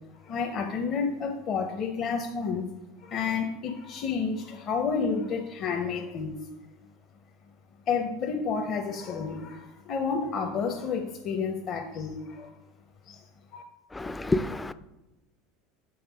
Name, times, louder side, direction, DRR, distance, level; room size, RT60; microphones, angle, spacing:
voice 1, 0.2-2.6 3.0-6.5 7.9-12.5 13.1-13.3 13.5-13.6, left 5 dB, 45° left, 0.7 m, -30 dB
voice 2, 13.9-14.7, left 2 dB, 10° left, 0.3 m, -28 dB
7.2 x 3.3 x 4.9 m
supercardioid pair, 115°, 0 cm